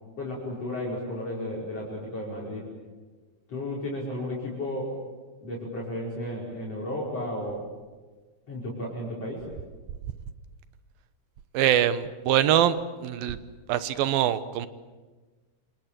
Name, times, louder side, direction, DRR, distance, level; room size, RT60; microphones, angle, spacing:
voice 1, 0.2-2.7 3.5-5.0 5.4-7.6 8.5-9.4, left 1 dB, 40° left, -4 dB, 6.5 m, -33 dB
voice 2, 11.5-13.4 13.7-14.7, right 11 dB, 80° right, 12 dB, 2.8 m, -23 dB
28.5 x 26.5 x 7.7 m, 1.3 s
omnidirectional pair, 4.2 m